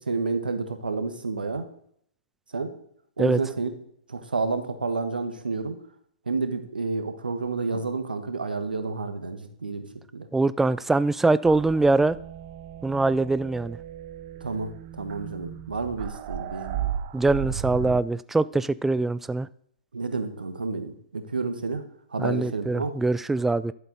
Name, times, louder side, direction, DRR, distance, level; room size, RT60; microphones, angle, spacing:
voice 1, 0.0-1.7 2.5-2.7 3.2-3.7 4.1-5.8 6.3-9.9 10.1-10.3 14.4-14.7 15.0-16.9 19.9-21.8 22.1-22.9, right 4 dB, 85° right, 9 dB, 1.4 m, -30 dB
voice 2, 10.3-12.2 12.8-13.8 17.1-19.5 22.2-23.7, right 3 dB, 5° right, 17 dB, 0.3 m, -23 dB
sound 1, 11.4-18.0, right 11 dB, 40° right, 0.8 m, -35 dB
12.0 x 7.6 x 4.0 m, 0.68 s
hypercardioid pair, 120°, 5 cm